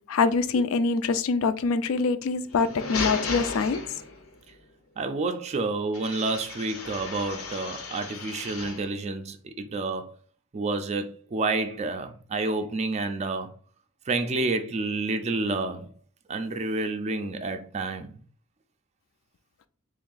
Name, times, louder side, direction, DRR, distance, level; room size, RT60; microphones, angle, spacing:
voice 1, 0.1-3.8, left 4 dB, 70° left, 0.3 m, -24 dB
sound 1, 2.4-4.4 5.9-8.9, left 4 dB, 90° left, 0.8 m, -35 dB
voice 2, 5.0-10.2 10.5-13.5 14.1-15.9 16.3-18.1, right 3 dB, 30° right, 0.4 m, -29 dB
3.1 x 2.6 x 3.8 m
head